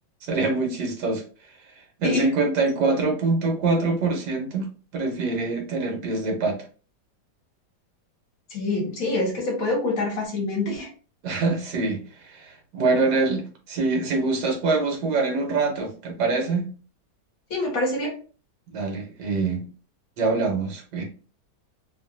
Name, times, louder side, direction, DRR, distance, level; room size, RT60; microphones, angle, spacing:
voice 1, 0.3-1.2 2.0-6.6 11.2-12.0 12.3-16.7 18.7-19.7 20.2-21.0, right 3 dB, 75° right, 2 dB, 1.4 m, -24 dB
voice 2, 8.5-10.9 17.5-18.2, left 2 dB, 60° left, 0 dB, 1.1 m, -26 dB
3.0 x 2.4 x 2.4 m, 0.37 s
omnidirectional pair, 1.9 m